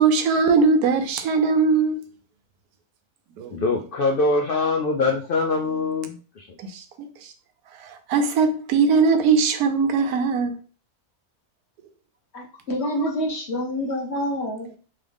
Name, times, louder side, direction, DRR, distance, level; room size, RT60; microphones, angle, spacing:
voice 1, 0.0-1.9 3.4-3.5 6.7-7.1 7.8-10.5, right 5 dB, 85° right, 1.2 m, -20 dB
voice 2, 3.5-6.5, left 3 dB, 85° left, 0.4 m, -23 dB
voice 3, 12.3-14.7, equal, 50° left, 1.3 m, -27 dB
3.6 x 3.2 x 3.4 m
omnidirectional pair, 1.6 m